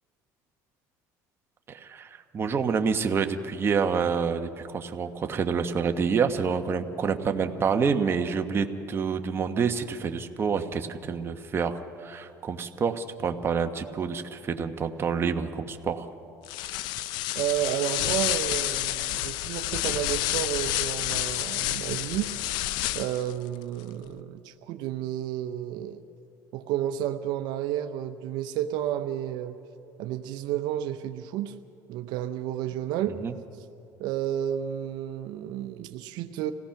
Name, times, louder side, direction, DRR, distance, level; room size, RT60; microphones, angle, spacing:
voice 1, 1.7-16.1 33.2-33.3, right 6 dB, 30° right, 6 dB, 1.2 m, -28 dB
sound 1, 16.4-23.3, left 15 dB, 75° left, 0.5 m, -29 dB
voice 2, 17.3-22.5 22.9-26.0 26.5-29.6 30.0-31.5 31.9-33.2 34.0-36.5, right 11 dB, 75° right, 8 dB, 0.8 m, -31 dB
26.5 x 17.0 x 5.9 m, 2.6 s
cardioid pair, 110°, 8 cm